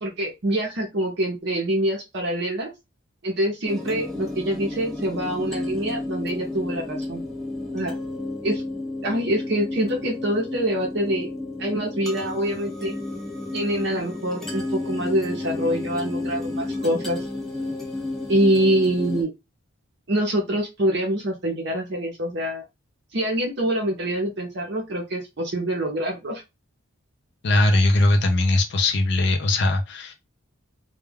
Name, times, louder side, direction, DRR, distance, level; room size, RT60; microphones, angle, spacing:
voice 1, 0.0-2.7 3.2-7.2 7.7-7.9 8.4-8.6 9.0-11.3 11.6-13.0 13.5-17.3 18.3-19.3 20.1-22.6 23.1-26.4, right 1 dB, 55° right, 0.7 m, -25 dB
sound 1, 3.7-19.2, left 2 dB, ahead, 0.6 m, -32 dB
voice 2, 27.4-30.1, left 2 dB, 55° left, 0.5 m, -20 dB
2.3 x 2.1 x 3.3 m
head